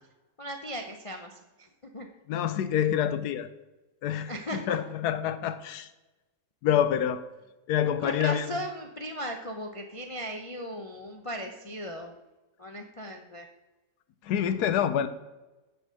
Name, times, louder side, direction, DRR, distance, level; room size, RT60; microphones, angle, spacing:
voice 1, 0.4-2.1 4.3-4.8 8.0-12.1 12.6-13.5, equal, 60° left, 4 dB, 0.3 m, -37 dB
voice 2, 2.3-3.5 4.0-5.9 6.6-7.2 7.7-8.5 14.2-15.1, left 9 dB, 75° left, 12 dB, 1.2 m, -27 dB
10.0 x 4.4 x 6.2 m, 1.1 s
omnidirectional pair, 1.8 m